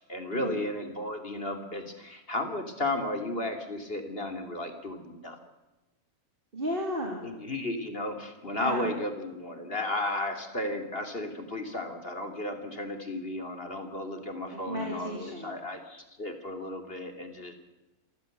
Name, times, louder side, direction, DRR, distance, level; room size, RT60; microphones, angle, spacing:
voice 1, 0.0-5.4 7.2-17.6, left 1 dB, 40° left, 7 dB, 3.3 m, -34 dB
voice 2, 6.5-7.2 8.5-8.9 14.5-15.5, equal, 35° right, 1 dB, 3.6 m, -34 dB
28.5 x 15.5 x 8.1 m, 1.0 s
omnidirectional pair, 1.6 m